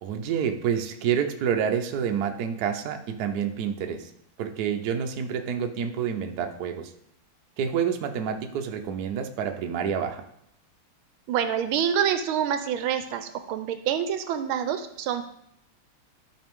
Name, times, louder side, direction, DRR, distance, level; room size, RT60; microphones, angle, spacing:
voice 1, 0.0-4.1 4.4-6.9 7.6-10.2, right 7 dB, 65° right, 5 dB, 1.0 m, -28 dB
voice 2, 11.3-15.2, right 9 dB, 80° right, 9 dB, 1.4 m, -27 dB
12.0 x 5.1 x 3.7 m, 0.75 s
omnidirectional pair, 2.3 m